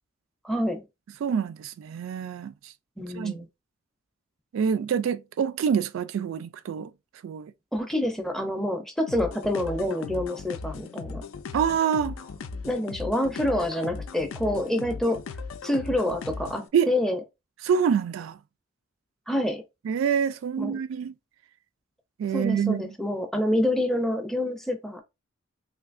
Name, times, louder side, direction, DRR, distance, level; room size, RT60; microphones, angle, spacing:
voice 1, 0.4-0.8 3.0-3.5 7.7-11.2 12.6-15.2 15.6-17.2 19.3-19.6 20.6-20.8 22.3-25.0, left 1 dB, ahead, 0.5 m, -27 dB
voice 2, 1.2-2.5 3.2-3.3 4.5-6.9 7.2-7.5 11.5-12.2 16.7-16.9 17.6-18.4 19.9-21.1 22.2-22.9, right 7 dB, 70° right, 0.3 m, -26 dB
sound 1, 9.1-16.7, left 4 dB, 75° left, 0.4 m, -38 dB
3.2 x 2.7 x 2.5 m
head